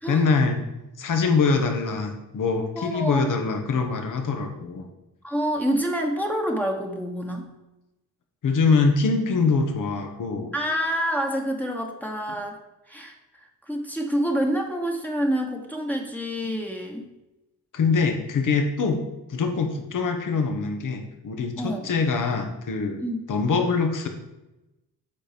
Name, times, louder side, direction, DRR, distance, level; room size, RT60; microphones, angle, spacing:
voice 1, 0.1-0.6 1.0-4.9 8.4-10.5 16.4-16.6 17.7-19.0 19.3-23.0 23.3-24.1, left 4 dB, 65° left, 4 dB, 1.3 m, -24 dB
voice 2, 2.7-3.3 5.2-7.4 10.5-12.6 12.9-13.1 13.7-17.1 21.6-21.9 23.0-23.2, equal, 5° left, 0 dB, 1.2 m, -27 dB
7.9 x 4.5 x 5.1 m, 0.97 s
cardioid pair, 75°, 33 cm